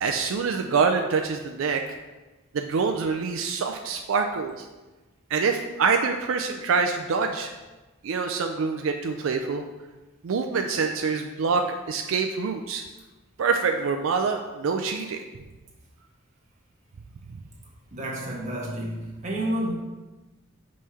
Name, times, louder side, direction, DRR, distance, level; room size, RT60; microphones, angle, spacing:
voice 1, 0.0-1.8 2.5-4.7 5.3-7.5 8.0-9.6 10.2-12.8 13.4-15.2, right 5 dB, 85° right, 4 dB, 0.4 m, -25 dB
voice 2, 17.9-19.7, right 1 dB, 35° right, -3 dB, 1.2 m, -30 dB
5.5 x 3.2 x 5.6 m, 1.2 s
head